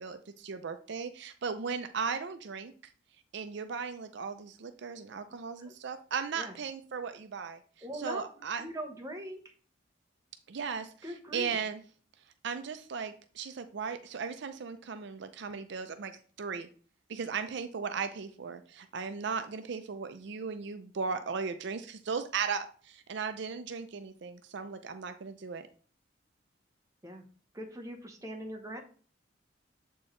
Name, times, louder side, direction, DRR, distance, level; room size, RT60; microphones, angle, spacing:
voice 1, 0.0-2.7 3.3-7.6 7.9-8.7 10.5-11.8 12.4-16.1 16.4-16.7 17.1-25.7, right 5 dB, 65° right, 9 dB, 0.5 m, -37 dB
voice 2, 7.8-8.2 8.6-9.5 11.0-11.6 27.0-27.2 27.5-28.8, right 1 dB, 20° right, 3 dB, 1.0 m, -41 dB
7.6 x 4.4 x 3.2 m, 0.42 s
head